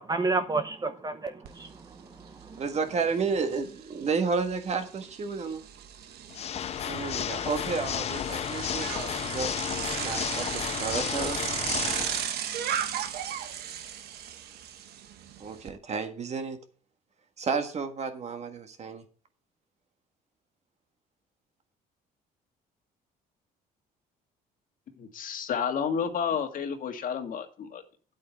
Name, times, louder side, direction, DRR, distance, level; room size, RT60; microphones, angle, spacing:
voice 1, 0.0-2.6, right 3 dB, 25° right, 9 dB, 0.8 m, -31 dB
Bicycle, 1.4-1.5 1.9-15.7, right 9 dB, 70° right, 1.2 m, -36 dB
voice 2, 2.6-5.6 6.9-9.5 10.0-11.4 15.4-16.6 17.4-19.0, right 5 dB, 40° right, 7 dB, 1.7 m, -31 dB
Water / Mechanisms, 6.3-12.3, left 9 dB, 40° left, 0.4 m, -32 dB
voice 3, 25.0-27.8, left 7 dB, 55° left, 6 dB, 1.8 m, -31 dB
8.8 x 8.4 x 4.4 m, 0.39 s
cardioid pair, 110°, 17 cm